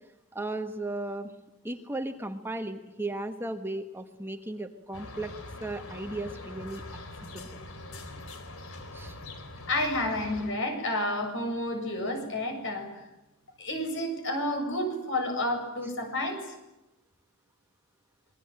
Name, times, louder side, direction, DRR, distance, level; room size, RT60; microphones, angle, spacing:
voice 1, 0.3-1.3 1.6-5.3 5.6-6.8 7.3-7.5 8.9-9.2, right 2 dB, 10° right, 6 dB, 1.3 m, -35 dB
sound 1, 4.9-10.5, left 2 dB, 75° left, 3.9 m, -43 dB
voice 2, 9.7-12.9 13.6-16.5, left 1 dB, 60° left, 5 dB, 7.5 m, -30 dB
27.0 x 21.5 x 8.9 m, 0.95 s
head